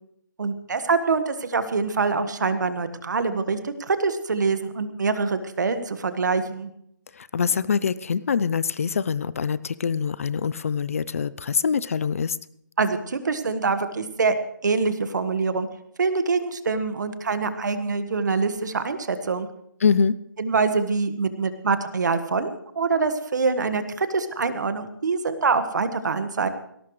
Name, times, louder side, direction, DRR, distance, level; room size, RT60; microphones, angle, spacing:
voice 1, 0.4-6.7 12.8-14.4 14.6-15.7 16.0-19.5 20.4-26.5, right 4 dB, 60° right, 10 dB, 1.6 m, -25 dB
voice 2, 7.1-12.4 19.8-20.2, left 6 dB, 40° left, 18 dB, 0.5 m, -24 dB
19.0 x 17.5 x 3.2 m, 0.72 s
hypercardioid pair, 165°, 11 cm